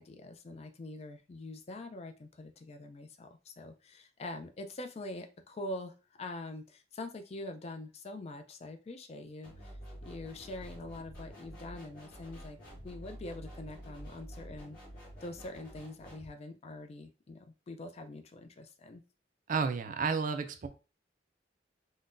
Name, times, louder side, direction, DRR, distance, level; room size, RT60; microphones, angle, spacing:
voice 1, 0.0-9.7 10.1-12.6 12.8-14.8 15.2-19.0, left 2 dB, 35° left, 0.3 m, -44 dB
sound 1, 9.4-16.3, equal, 55° left, 1.6 m, -49 dB
voice 2, 19.5-20.7, right 5 dB, 45° right, 0.4 m, -31 dB
3.7 x 2.1 x 2.5 m
head